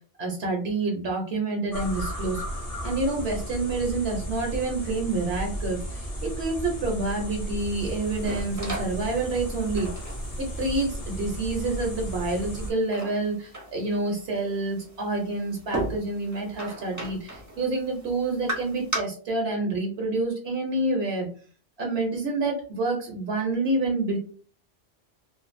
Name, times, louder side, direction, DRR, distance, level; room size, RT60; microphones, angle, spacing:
voice 1, 0.2-2.4 2.8-9.9 10.4-21.3 21.8-24.2, right 2 dB, 70° right, 1 dB, 1.0 m, -28 dB
sound 1, 1.7-12.7, equal, 40° left, 0.8 m, -34 dB
sound 2, 7.6-19.0, right 1 dB, 20° right, 0.6 m, -38 dB
2.6 x 2.3 x 2.5 m, 0.42 s
omnidirectional pair, 1.1 m